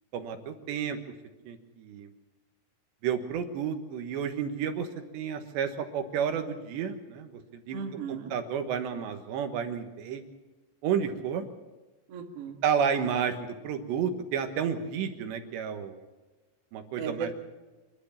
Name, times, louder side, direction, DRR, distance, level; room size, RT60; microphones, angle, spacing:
voice 1, 0.1-1.0 1.5-2.1 3.0-4.9 5.1-10.2 10.8-11.5 12.6-16.1 16.7-17.3, right 7 dB, 75° right, 7 dB, 3.4 m, -31 dB
voice 2, 7.7-8.3 12.1-12.6 17.0-17.3, right 6 dB, 50° right, 3 dB, 2.1 m, -35 dB
26.5 x 11.5 x 8.6 m, 1.2 s
omnidirectional pair, 5.4 m